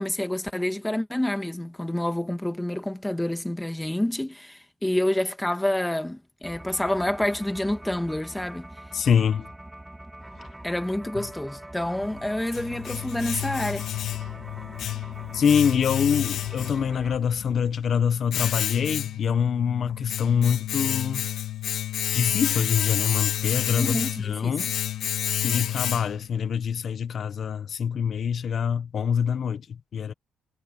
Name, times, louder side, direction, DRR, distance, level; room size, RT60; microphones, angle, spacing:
voice 1, 0.0-8.7 10.6-13.9 23.8-24.6, left 1 dB, 5° left, 2.0 m, -28 dB
sound 1, 6.4-17.2, right 1 dB, 10° right, 3.6 m, -43 dB
voice 2, 8.9-9.5 15.3-21.3 22.1-24.7 25.4-30.1, left 7 dB, 55° left, 1.2 m, -25 dB
Domestic sounds home sounds, 12.0-26.4, left 11 dB, 75° left, 1.9 m, -30 dB
cardioid pair, 90°, 0 cm